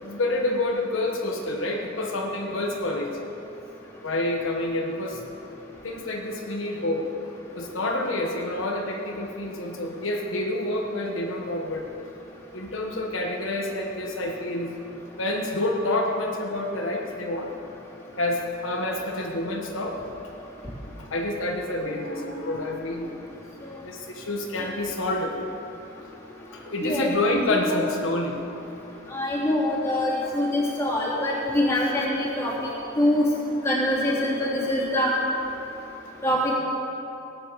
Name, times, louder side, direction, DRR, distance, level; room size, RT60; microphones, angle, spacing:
voice 1, 0.0-3.1 4.0-5.2 5.8-7.1 7.5-11.9 12.5-17.7 18.2-20.7 21.0-23.1 23.8-25.4 26.5-28.4 32.6-32.7, left 1 dB, 80° left, 1 dB, 1.4 m, -28 dB
voice 2, 27.5-27.8 29.1-32.5 33.0-33.3 33.6-35.1 36.2-36.5, left 1 dB, 15° left, -6 dB, 3.2 m, -24 dB
17.5 x 9.0 x 6.9 m, 3.0 s
head